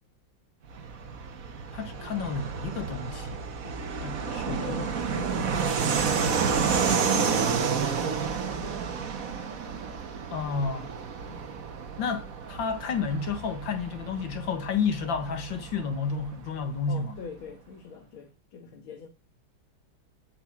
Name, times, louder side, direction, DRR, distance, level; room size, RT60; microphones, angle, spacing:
Fixed-wing aircraft airplane, 0.7-16.9, right 6 dB, 50° right, 1.4 m, -30 dB
voice 1, 1.7-3.4 4.0-4.8 10.3-10.9 12.0-17.2, left 5 dB, 70° left, 2.1 m, -31 dB
voice 2, 3.6-3.9 4.4-6.7 11.3-11.7 16.9-19.1, left 4 dB, 90° left, 2.1 m, -43 dB
9.6 x 5.5 x 7.3 m
omnidirectional pair, 2.2 m